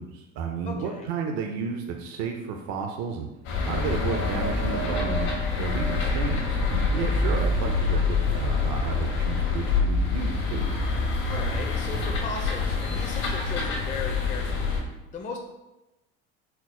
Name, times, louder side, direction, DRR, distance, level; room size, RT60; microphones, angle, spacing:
voice 1, 0.0-3.3 3.7-10.8, right 6 dB, 65° right, 3 dB, 0.5 m, -32 dB
voice 2, 0.6-1.1 7.0-7.2 11.3-14.8 15.1-15.4, left 4 dB, 25° left, 1 dB, 0.5 m, -37 dB
sound 1, 3.4-14.8, left 3 dB, 65° left, 1.2 m, -26 dB
4.4 x 2.0 x 4.2 m, 0.98 s
supercardioid pair, 90°, 32 cm